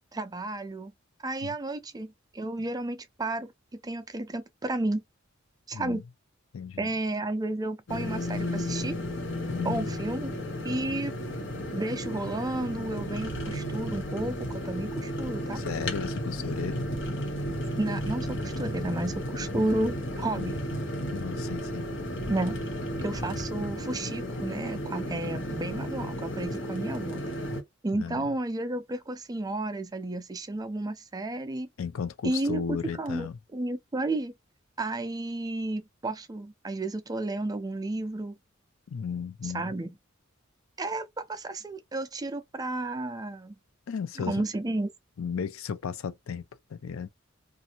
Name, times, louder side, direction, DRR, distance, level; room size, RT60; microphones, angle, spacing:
voice 1, 0.1-0.9 1.2-5.0 5.7-6.0 6.8-9.0 9.6-10.3 10.6-11.1 11.7-15.6 17.8-20.6 22.3-22.6 23.0-27.2 27.8-31.7 32.2-34.3 34.8-38.4 39.4-39.9 40.8-43.5 44.3-44.9, right 2 dB, 20° right, 0.4 m, -32 dB
voice 2, 5.7-6.0 6.5-6.9 9.5-9.9 10.8-11.0 15.5-16.8 20.4-20.5 21.1-21.9 27.9-28.2 31.8-33.4 38.9-39.7 43.9-44.5 45.2-46.4 46.7-47.1, left 6 dB, 80° left, 0.4 m, -35 dB
sound 1, 7.9-27.6, equal, 60° left, 1.0 m, -33 dB
2.6 x 2.5 x 2.8 m
head